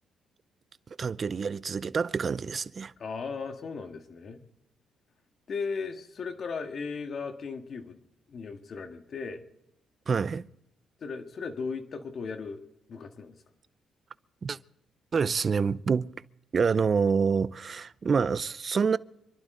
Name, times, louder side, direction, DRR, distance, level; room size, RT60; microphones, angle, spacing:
voice 1, 1.0-2.9 10.1-10.5 14.4-14.6 15.1-16.1 16.5-19.0, right 5 dB, 40° right, 0.6 m, -27 dB
voice 2, 3.0-4.4 5.5-8.0 8.3-9.4 11.0-12.6 12.9-13.4, left 5 dB, 50° left, 1.8 m, -36 dB
27.0 x 11.5 x 3.9 m
cardioid pair, 90°, 0 cm